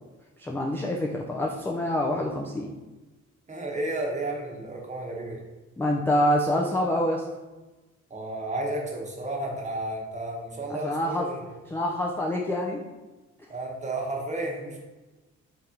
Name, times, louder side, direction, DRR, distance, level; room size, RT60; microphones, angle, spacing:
voice 1, 0.4-2.7 5.8-7.3 10.7-11.3 11.7-12.8, left 1 dB, 10° left, -1 dB, 0.3 m, -26 dB
voice 2, 3.5-5.4 8.1-11.5 13.5-14.8, right 1 dB, 25° right, -1 dB, 0.9 m, -32 dB
3.3 x 2.8 x 3.7 m, 1.2 s
cardioid pair, 90°, 30 cm